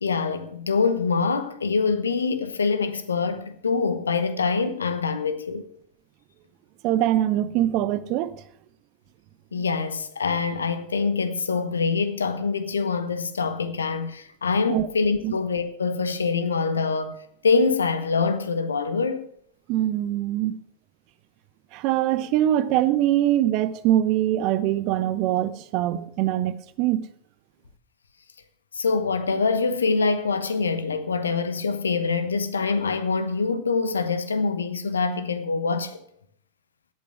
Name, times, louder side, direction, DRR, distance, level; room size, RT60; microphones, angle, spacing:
voice 1, 0.0-5.6 9.5-17.2 17.4-19.3 28.7-36.0, left 4 dB, 70° left, 1.1 m, -25 dB
voice 2, 6.8-8.3 14.7-14.9 15.2-15.3 19.7-20.6 21.7-27.1, right 12 dB, 40° right, 0.8 m, -23 dB
11.5 x 8.6 x 6.3 m
figure-of-eight pair, 90°, 0 cm